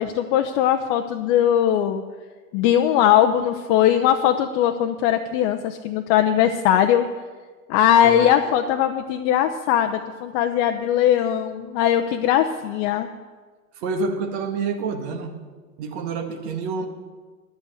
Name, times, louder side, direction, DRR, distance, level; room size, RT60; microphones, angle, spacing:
voice 1, 0.0-2.0 2.5-7.1 7.7-13.1, left 10 dB, 45° left, 5 dB, 0.8 m, -20 dB
voice 2, 13.8-15.4 15.8-16.9, right 4 dB, 55° right, 5 dB, 1.8 m, -27 dB
11.0 x 8.1 x 7.9 m, 1.4 s
figure-of-eight pair, 85°, 41 cm